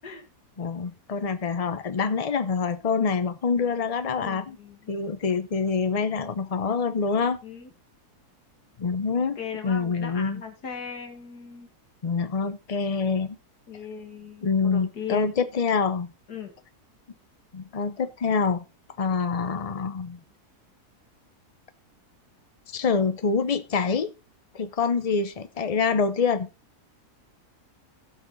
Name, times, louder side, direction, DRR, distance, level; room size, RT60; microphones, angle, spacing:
voice 1, 0.6-4.6 4.9-7.4 8.8-9.4 9.6-10.4 12.0-13.4 14.4-16.1 17.5-18.6 19.0-20.2 22.7-24.1 24.5-26.5, left 5 dB, 60° left, 0.3 m, -26 dB
voice 2, 4.2-5.0 7.2-7.7 9.4-11.7 13.7-15.3 16.3-16.5, left 7 dB, 90° left, 2.5 m, -38 dB
15.5 x 6.2 x 4.0 m
omnidirectional pair, 1.7 m